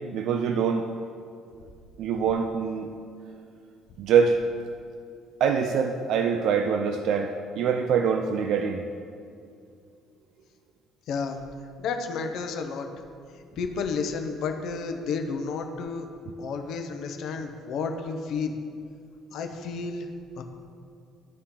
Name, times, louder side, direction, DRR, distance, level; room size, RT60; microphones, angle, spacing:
voice 1, 0.1-0.8 2.0-2.9 4.0-4.4 5.4-8.8, right 6 dB, 60° right, 5 dB, 0.4 m, -24 dB
voice 2, 11.1-11.4 11.8-12.9 13.6-16.1 16.4-18.6 19.3-20.1 20.4-20.5, left 5 dB, 55° left, 5 dB, 0.7 m, -31 dB
13.0 x 4.3 x 3.8 m, 2.4 s
cardioid pair, 155°, 0 cm